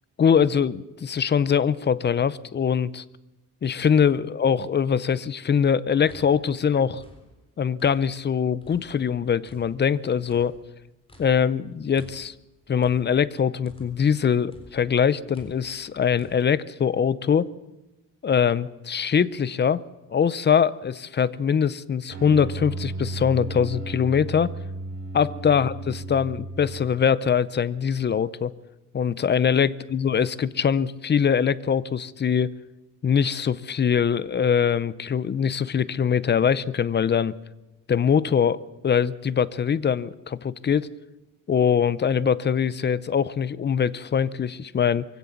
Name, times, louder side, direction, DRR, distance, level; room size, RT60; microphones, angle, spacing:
voice 1, 0.2-3.0 3.6-7.0 7.6-10.5 11.2-12.3 12.7-17.5 18.2-19.8 20.1-24.5 25.1-28.5 28.9-32.5 33.0-37.3 37.9-38.6 38.8-40.9 41.5-45.1, left 7 dB, 30° left, 0.6 m, -22 dB
sound 1, 5.8-8.3 8.6-14.2 14.5-16.4, equal, 15° left, 3.9 m, -51 dB
sound 2, 22.1-27.3, right 2 dB, 45° right, 5.3 m, -34 dB
23.5 x 16.5 x 7.2 m
cardioid pair, 155°, 34 cm